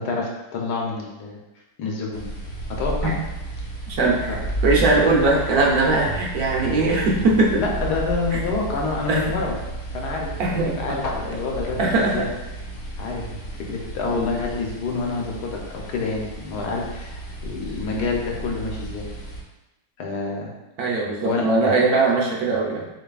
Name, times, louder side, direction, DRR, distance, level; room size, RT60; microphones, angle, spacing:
voice 1, 0.0-1.4 1.8-2.2 2.7-3.2 4.3-4.4 7.6-9.6 9.9-12.3 13.0-19.1 20.0-20.5 21.2-21.8, left 4 dB, 80° left, -1 dB, 1.3 m, -28 dB
sound 1, 2.1-19.4, right 2 dB, 60° left, 1.0 m, -32 dB
voice 2, 3.9-4.4 4.6-7.6 9.1-9.2 10.4-10.8 11.8-12.3 14.1-14.3 17.9-18.1 20.8-22.8, right 3 dB, 70° right, -3 dB, 1.2 m, -20 dB
6.5 x 2.6 x 2.3 m, 0.99 s
omnidirectional pair, 1.8 m